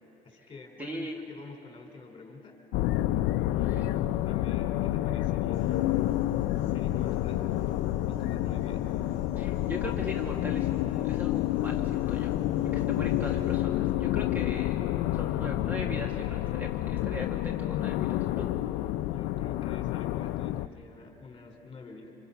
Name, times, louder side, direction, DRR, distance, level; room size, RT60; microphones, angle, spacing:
voice 1, 0.2-2.6 3.5-5.9 6.6-7.5 8.1-8.9 19.1-22.1, left 3 dB, 30° left, 2 dB, 4.8 m, -48 dB
voice 2, 0.8-1.2 3.6-3.9 9.3-12.3 12.7-14.8 15.1-18.5, equal, 10° right, 1 dB, 1.8 m, -40 dB
sound 1, 2.7-20.7, left 14 dB, 80° left, 0.6 m, -29 dB
Piano, 5.5-13.5, right 2 dB, 90° right, 5.1 m, -49 dB
26.5 x 25.5 x 5.9 m, 2.9 s
cardioid pair, 105°, 17 cm